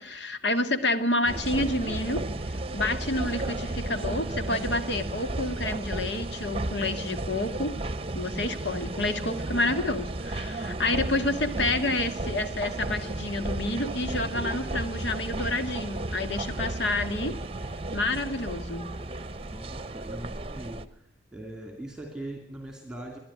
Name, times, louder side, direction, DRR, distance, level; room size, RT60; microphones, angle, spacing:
voice 1, 0.0-7.7 8.1-17.3 17.9-18.9, left 2 dB, 65° left, 8 dB, 1.8 m, -29 dB
sound 1, 1.3-20.9, right 2 dB, 30° right, 0.8 m, -33 dB
voice 2, 19.5-21.0 21.3-23.2, right 1 dB, 5° right, 3 dB, 2.6 m, -40 dB
23.5 x 11.0 x 10.0 m, 0.82 s
head